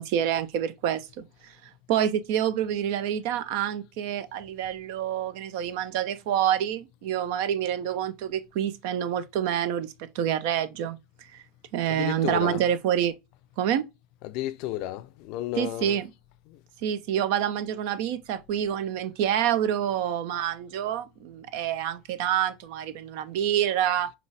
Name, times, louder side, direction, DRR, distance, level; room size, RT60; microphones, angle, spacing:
voice 1, 0.0-1.5 1.9-11.0 11.3-11.4 11.7-13.1 13.6-13.8 15.6-16.1 16.8-24.1, right 10 dB, 65° right, 0.5 m, -27 dB
voice 2, 11.9-12.6 14.2-16.0 16.5-16.6, left 14 dB, 60° left, 0.4 m, -33 dB
5.8 x 2.4 x 3.3 m
hypercardioid pair, 80°, 0 cm